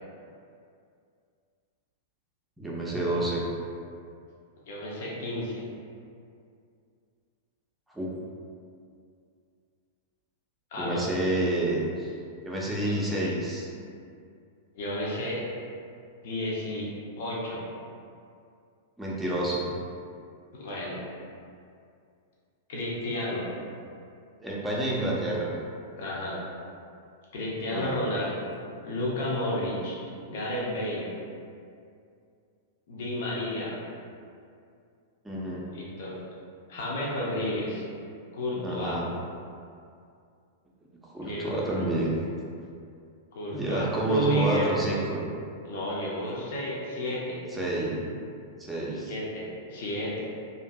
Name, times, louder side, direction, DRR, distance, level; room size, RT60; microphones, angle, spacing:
voice 1, 2.6-3.4 7.9-8.1 10.8-12.1 12.4-13.7 19.0-19.6 24.4-25.5 27.7-28.0 35.2-35.7 38.6-39.1 41.1-42.1 43.5-45.2 47.5-48.0 48.6-49.1, right 1 dB, 5° right, -5 dB, 0.5 m, -29 dB
voice 2, 4.7-5.6 10.7-11.1 12.8-13.0 14.7-15.5 16.2-16.9 17.2-17.6 20.5-21.0 22.7-23.5 26.0-26.4 27.3-28.5 28.8-30.0 30.3-31.1 32.9-33.7 35.7-36.2 36.7-37.8 38.3-39.0 41.2-41.9 43.3-44.7 45.6-47.4 49.1-50.2, equal, 60° left, -5 dB, 0.6 m, -31 dB
2.6 x 2.5 x 2.2 m, 2.4 s
figure-of-eight pair, 95°, 0 cm